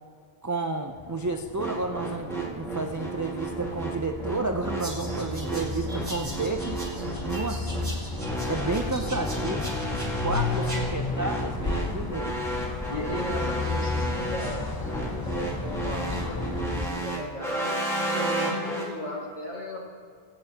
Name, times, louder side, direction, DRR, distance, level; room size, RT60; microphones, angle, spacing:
voice 1, 0.4-6.8 7.2-7.6 8.5-9.7 10.2-12.4, right 3 dB, 30° right, 4 dB, 0.3 m, -31 dB
sound 1, 0.9-16.9, left 3 dB, 25° left, 0.9 m, -33 dB
sound 2, 1.6-18.9, right 1 dB, 5° left, 1.6 m, -32 dB
sound 3, 4.8-10.8, right 1 dB, 60° right, 3.5 m, -41 dB
voice 2, 12.9-14.9 15.2-19.8, left 1 dB, 45° left, -3 dB, 2.1 m, -36 dB
20.0 x 8.9 x 2.9 m, 2.2 s
omnidirectional pair, 1.0 m